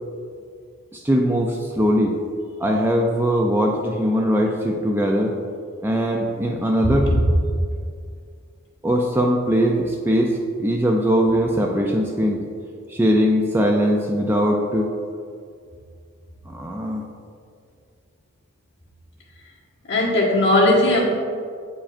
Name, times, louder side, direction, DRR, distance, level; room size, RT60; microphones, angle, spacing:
voice 1, 0.9-2.2 2.6-5.3 5.8-7.1 8.8-12.4 12.9-14.9 16.5-17.0, equal, 10° right, 1 dB, 0.3 m, -20 dB
voice 2, 19.9-21.0, left 1 dB, 55° left, -5 dB, 1.4 m, -17 dB
8.4 x 4.8 x 2.5 m, 2.2 s
head